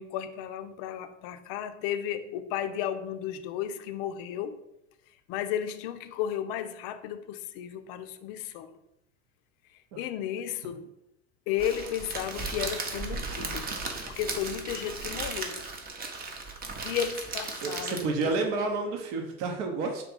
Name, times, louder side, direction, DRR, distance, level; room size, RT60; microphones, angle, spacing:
voice 1, 0.0-4.6 5.3-8.8 10.0-10.9 11.5-13.7 14.1-15.6 16.8-18.3, left 10 dB, 45° left, 0.5 m, -34 dB
Crackle, 11.6-18.3, right 3 dB, 20° right, 0.7 m, -36 dB
voice 2, 17.6-20.0, right 3 dB, 55° right, 0.8 m, -30 dB
3.3 x 2.8 x 4.1 m
figure-of-eight pair, 75°, 41 cm